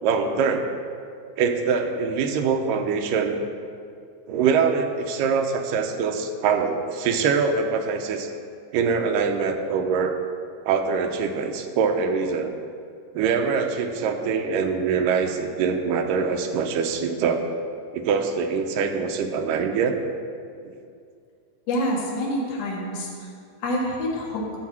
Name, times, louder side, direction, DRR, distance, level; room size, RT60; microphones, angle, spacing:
voice 1, 0.0-0.7 1.4-3.4 4.3-8.3 8.7-10.2 10.7-12.5 13.1-17.4 17.9-20.0 20.6-20.7, right 5 dB, 90° right, 5 dB, 2.4 m, -24 dB
voice 2, 21.7-23.3 23.6-24.4, equal, 55° left, -3 dB, 2.7 m, -27 dB
12.5 x 4.8 x 7.2 m, 2.3 s
omnidirectional pair, 3.7 m